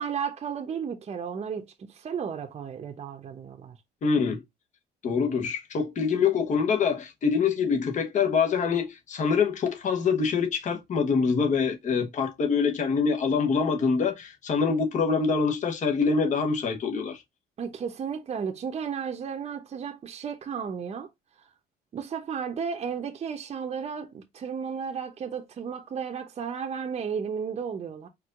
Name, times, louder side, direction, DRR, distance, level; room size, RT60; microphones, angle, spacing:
voice 1, 0.0-3.8 17.6-21.1 21.9-28.1, right 6 dB, 40° right, 0.9 m, -33 dB
voice 2, 4.0-4.4 5.0-17.2, left 5 dB, 45° left, 1.3 m, -25 dB
4.6 x 2.7 x 3.8 m
cardioid pair, 110°, 17 cm